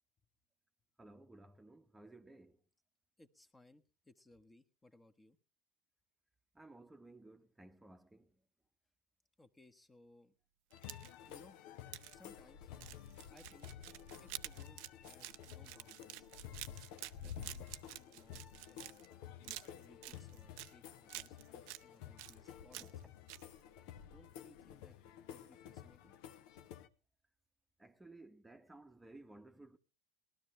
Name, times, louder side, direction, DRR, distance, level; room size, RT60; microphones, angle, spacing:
voice 1, 1.0-2.6 6.5-8.5 22.8-23.0 27.8-29.8, right 2 dB, 10° right, 1.0 m, -57 dB
voice 2, 3.2-5.4 9.4-10.4 11.3-11.6 12.1-12.7 13.3-13.7 14.2-16.3 17.2-23.0 24.1-25.0 25.3-26.2, left 2 dB, 15° left, 1.2 m, -64 dB
sound 1, 10.7-26.9, left 9 dB, 65° left, 0.9 m, -52 dB
sound 2, 10.7-11.3 11.9-12.1 12.7-19.1 19.4-20.7 21.1-21.8 22.2-23.0 23.3-23.4, right 17 dB, 60° right, 0.6 m, -49 dB
19.5 x 12.5 x 3.2 m
hypercardioid pair, 90°, 0 cm